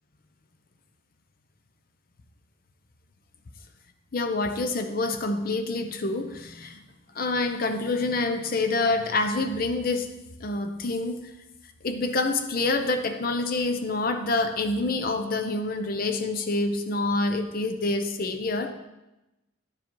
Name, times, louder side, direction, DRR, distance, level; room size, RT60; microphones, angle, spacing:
voice 1, 4.1-6.8 7.1-10.1 10.4-11.3 11.8-18.7, left 2 dB, 45° left, 8 dB, 0.6 m, -27 dB
10.5 x 4.9 x 4.5 m, 0.99 s
head